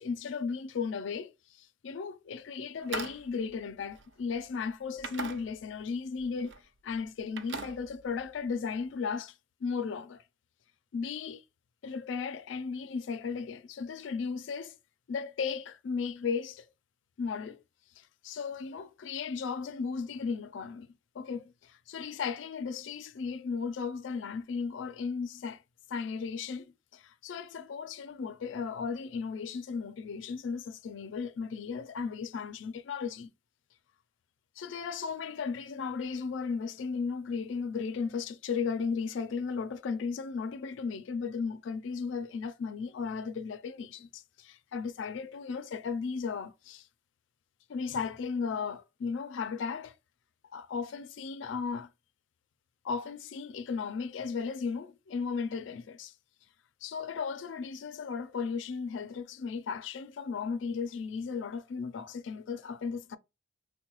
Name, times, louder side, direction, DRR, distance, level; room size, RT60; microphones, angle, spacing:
voice 1, 0.0-1.3 1.6-6.5 6.8-9.3 9.6-10.2 10.9-11.4 11.8-14.8 15.1-16.7 17.2-17.6 18.0-20.9 21.1-25.6 25.9-33.3 34.6-46.9 47.7-49.9 50.5-51.9 52.8-56.1 56.8-63.2, left 5 dB, 75° left, 0.4 m, -35 dB
sound 1, 2.8-4.5 5.0-5.9 6.2-6.6 6.9-8.5, right 4 dB, 70° right, 0.4 m, -42 dB
3.7 x 2.1 x 2.9 m
head